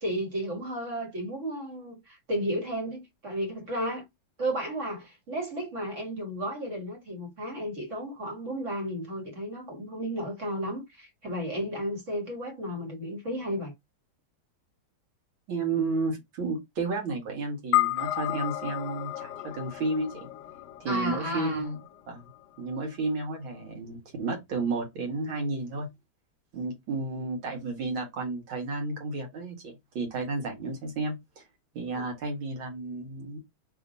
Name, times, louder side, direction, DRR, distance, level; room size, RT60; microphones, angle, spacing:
voice 1, 0.0-4.0 4.4-13.7 20.9-21.6, equal, 40° right, 1.8 m, -33 dB
voice 2, 15.5-20.3 20.8-21.8 22.1-22.3 22.6-25.9 26.5-31.4 31.7-33.4, right 3 dB, 80° right, 2.5 m, -32 dB
sound 1, 17.7-22.3, left 16 dB, 70° left, 1.2 m, -32 dB
4.2 x 3.0 x 3.9 m
omnidirectional pair, 2.2 m